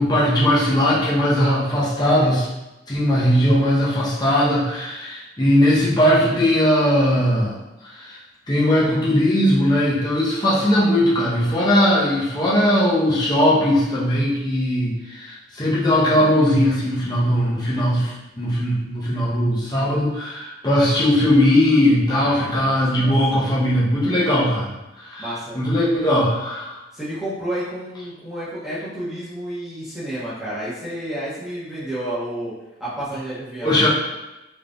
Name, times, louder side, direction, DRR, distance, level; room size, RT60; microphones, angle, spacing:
voice 1, 0.0-2.5 2.9-7.6 7.9-8.2 8.5-24.7 25.0-26.8 33.6-33.9, left 1 dB, 20° left, -6 dB, 0.8 m, -19 dB
voice 2, 22.1-23.4 25.2-25.6 26.9-32.5 32.8-33.9, right 1 dB, ahead, -11 dB, 1.0 m, -30 dB
3.6 x 3.1 x 2.5 m, 1.0 s
head